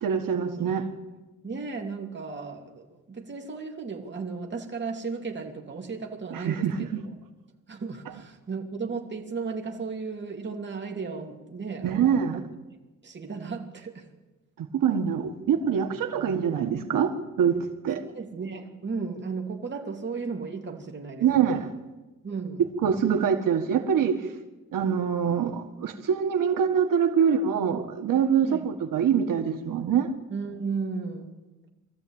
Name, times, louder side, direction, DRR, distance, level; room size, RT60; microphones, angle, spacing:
voice 1, 0.0-0.9 6.3-7.0 11.8-12.4 14.6-17.5 17.8-18.0 21.2-21.7 22.8-24.3 24.7-30.1, right 7 dB, 85° right, 5 dB, 1.7 m, -24 dB
voice 2, 0.5-0.9 1.4-7.1 7.7-12.5 13.0-14.1 18.1-21.6 22.2-22.6 28.4-28.7 30.3-31.4, right 4 dB, 35° right, 2 dB, 2.8 m, -35 dB
23.0 x 14.0 x 8.9 m, 1.1 s
wide cardioid pair, 130°, 32 cm